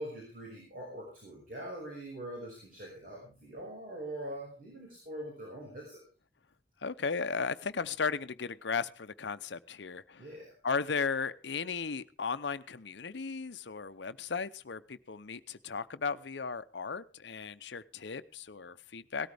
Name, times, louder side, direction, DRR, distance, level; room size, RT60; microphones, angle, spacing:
voice 1, 0.0-6.0 10.2-10.5, right 1 dB, 50° right, -2 dB, 5.6 m, -43 dB
voice 2, 6.8-10.3 10.6-19.3, left 5 dB, 70° left, 12 dB, 0.7 m, -36 dB
18.0 x 13.5 x 3.5 m, 0.36 s
head